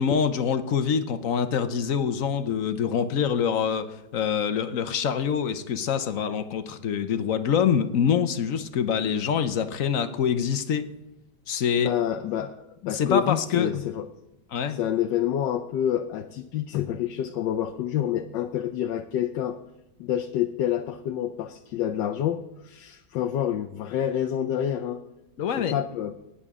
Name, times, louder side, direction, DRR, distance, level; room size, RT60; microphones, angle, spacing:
voice 1, 0.0-10.9 11.5-11.9 12.9-13.7 14.5-14.8 25.4-25.8, left 7 dB, 60° left, 10 dB, 1.0 m, -25 dB
voice 2, 11.8-14.1 14.7-19.6 20.0-25.0 25.6-26.1, left 10 dB, 90° left, 6 dB, 1.3 m, -28 dB
19.0 x 9.9 x 3.7 m, 0.92 s
omnidirectional pair, 1.9 m